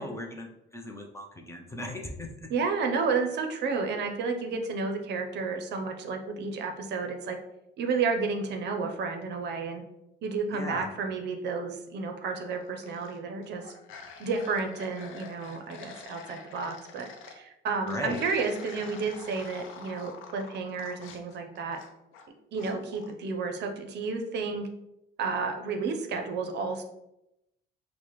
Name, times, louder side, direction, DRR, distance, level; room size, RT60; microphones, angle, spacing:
voice 1, 0.0-2.3 10.5-10.9 17.9-18.2, left 1 dB, 15° left, 1 dB, 0.5 m, -37 dB
voice 2, 2.5-7.4 7.8-9.8 10.2-13.6 14.2-21.8 22.5-24.7 25.2-26.8, right 4 dB, 60° right, 5 dB, 0.6 m, -31 dB
sound 1, 12.6-13.2 13.4-17.4 17.9-22.3 22.6-23.1, left 5 dB, 80° left, 0.6 m, -47 dB
4.7 x 2.1 x 3.0 m, 0.86 s
cardioid pair, 115°, 20 cm